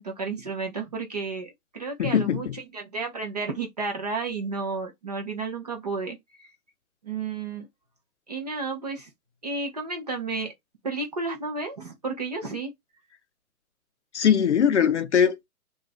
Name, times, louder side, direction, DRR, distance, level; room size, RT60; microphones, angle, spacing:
voice 1, 0.0-6.5 7.0-7.7 8.3-9.1 9.4-10.5 10.8-12.7, right 4 dB, 30° right, 0.5 m, -32 dB
voice 2, 2.0-2.5 14.1-15.5, left 8 dB, 50° left, 0.5 m, -21 dB
2.4 x 2.3 x 3.9 m
figure-of-eight pair, 140°, 45 cm